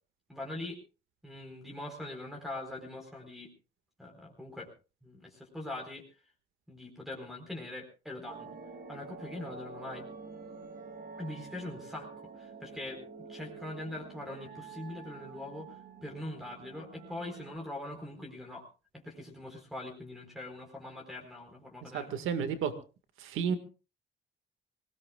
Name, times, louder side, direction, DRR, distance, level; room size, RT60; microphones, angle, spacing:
voice 1, 0.3-0.8 1.2-3.5 4.0-4.7 5.0-6.0 6.7-8.5 8.9-10.1 11.2-18.6 18.9-22.2, left 1 dB, ahead, -2 dB, 4.3 m, -42 dB
sound 1, 8.3-17.6, right 4 dB, 45° right, 2.7 m, -48 dB
voice 2, 21.8-22.7 23.2-23.6, right 7 dB, 90° right, 9 dB, 1.9 m, -32 dB
25.5 x 19.0 x 2.4 m, 0.34 s
cardioid pair, 90°, 20 cm